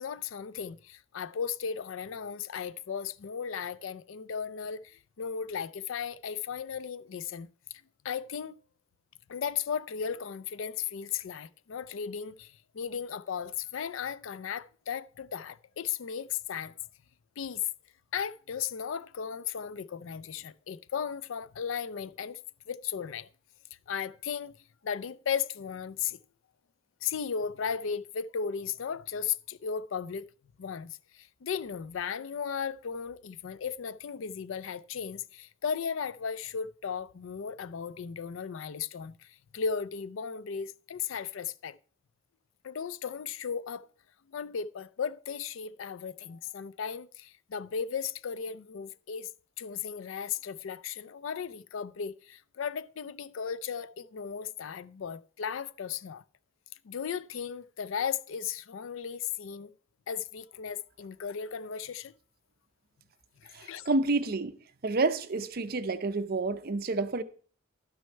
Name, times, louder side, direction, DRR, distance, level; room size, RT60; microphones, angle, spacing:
voice 1, 0.0-7.5 8.0-8.6 9.3-16.7 17.4-17.7 18.1-22.4 22.7-23.3 23.9-24.6 24.8-26.2 27.0-30.2 30.6-39.1 39.5-41.8 42.6-43.9 44.3-49.3 49.6-56.2 56.8-59.7 60.1-62.1 63.4-63.9, left 7 dB, 75° left, 0.4 m, -36 dB
voice 2, 63.5-64.6 64.8-67.2, right 3 dB, 50° right, 0.6 m, -29 dB
12.0 x 6.3 x 4.5 m
head